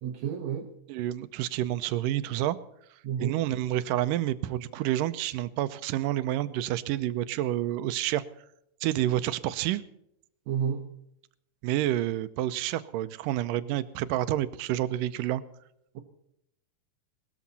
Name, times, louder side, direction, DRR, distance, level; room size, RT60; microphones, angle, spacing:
voice 1, 0.0-0.7 3.0-3.4 10.5-10.8 16.0-16.1, right 8 dB, 65° right, 5 dB, 2.1 m, -30 dB
voice 2, 0.9-2.6 3.2-8.2 8.8-9.8 11.6-15.4, right 13 dB, 80° right, 14 dB, 2.3 m, -29 dB
19.0 x 13.5 x 4.1 m, 0.75 s
omnidirectional pair, 3.9 m